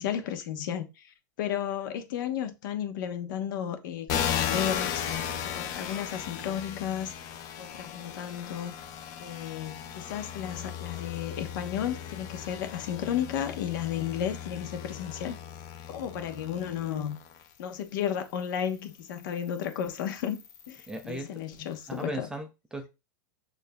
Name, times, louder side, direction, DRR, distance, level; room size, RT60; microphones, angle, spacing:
voice 1, 0.0-7.1 7.6-8.7 9.2-15.4 15.9-17.2 17.6-20.4 20.7-22.3, left 9 dB, 65° left, 0.9 m, -33 dB
sound 1, 4.1-17.5 18.2-21.1, left 9 dB, 35° left, 0.6 m, -36 dB
voice 2, 20.9-21.3 21.9-22.9, right 1 dB, 5° right, 0.5 m, -36 dB
6.5 x 2.6 x 2.2 m
supercardioid pair, 145°, 11 cm